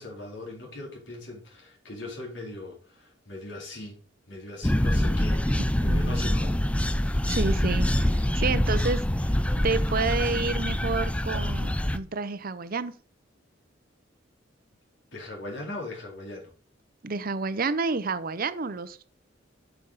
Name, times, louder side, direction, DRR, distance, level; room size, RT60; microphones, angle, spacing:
voice 1, 0.0-4.0 4.3-6.7 9.6-9.7 15.1-16.5, left 2 dB, 70° left, 4.1 m, -40 dB
sound 1, 4.6-12.0, left 1 dB, 5° left, 0.5 m, -25 dB
voice 2, 5.8-6.2 7.3-9.0 9.6-12.9 17.0-19.1, right 4 dB, 50° right, 0.7 m, -29 dB
8.7 x 7.1 x 4.1 m
head